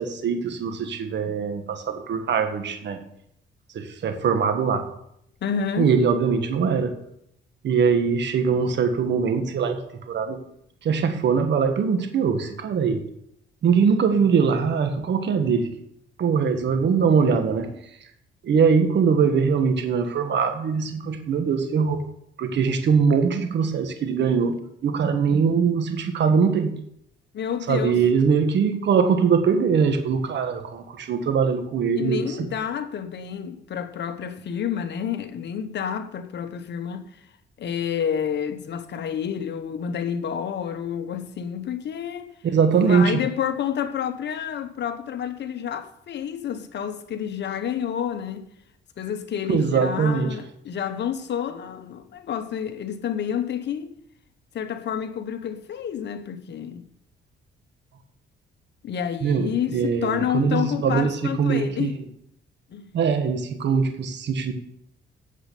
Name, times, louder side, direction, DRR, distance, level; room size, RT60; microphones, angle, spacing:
voice 1, 0.0-3.0 3.7-4.8 5.8-6.9 7.6-10.4 10.8-13.0 13.6-15.8 16.2-17.7 18.4-22.0 22.4-24.5 24.8-26.7 27.7-32.5 42.4-43.2 49.5-50.3 59.2-61.9 62.9-64.5, right 6 dB, 65° right, 1.6 m, -22 dB
voice 2, 5.4-5.9 27.3-28.0 32.0-37.1 37.6-42.3 42.7-48.5 49.0-54.0 54.5-56.9 58.8-62.0 62.7-62.9, left 8 dB, 60° left, 1.1 m, -29 dB
8.9 x 7.6 x 6.8 m
cardioid pair, 90°, 20 cm